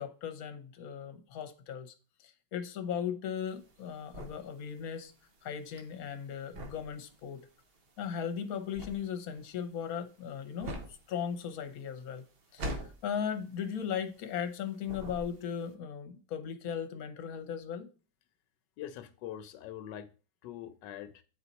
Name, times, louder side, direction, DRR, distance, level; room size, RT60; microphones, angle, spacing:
voice 1, 0.0-1.9 2.2-5.1 5.4-7.4 8.0-10.8 11.1-12.2 12.5-12.6 13.0-17.9, left 8 dB, 60° left, 1.3 m, -37 dB
sound 1, 3.4-14.6 14.8-15.7, equal, 45° right, 0.9 m, -44 dB
voice 2, 18.8-20.1 20.4-21.2, left 11 dB, 85° left, 1.2 m, -43 dB
8.7 x 4.3 x 4.0 m
omnidirectional pair, 1.9 m